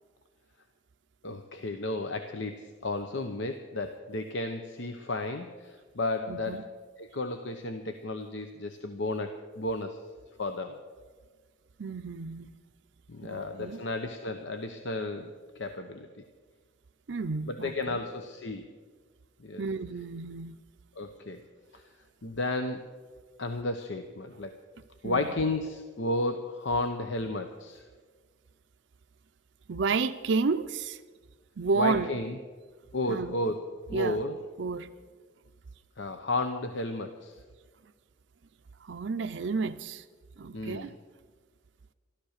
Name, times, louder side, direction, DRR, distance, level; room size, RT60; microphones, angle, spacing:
voice 1, 1.2-6.7 7.0-10.0 10.4-10.8 13.1-15.3 15.6-16.2 17.5-18.7 19.4-19.6 21.0-21.4 21.7-21.8 22.2-22.9 23.4-24.5 25.0-27.8 31.7-32.4 32.9-33.6 33.9-34.4 36.0-37.4 40.5-40.9, left 2 dB, 70° left, 7 dB, 0.9 m, -33 dB
voice 2, 6.3-6.6 11.8-12.5 13.2-13.8 17.1-18.0 19.6-20.6 25.0-25.3 29.7-31.0 31.6-32.1 33.1-33.4 33.9-34.2 34.6-34.9 38.8-40.0 40.4-40.9, right 4 dB, 65° right, 9 dB, 0.5 m, -31 dB
13.5 x 13.0 x 6.6 m, 1.5 s
head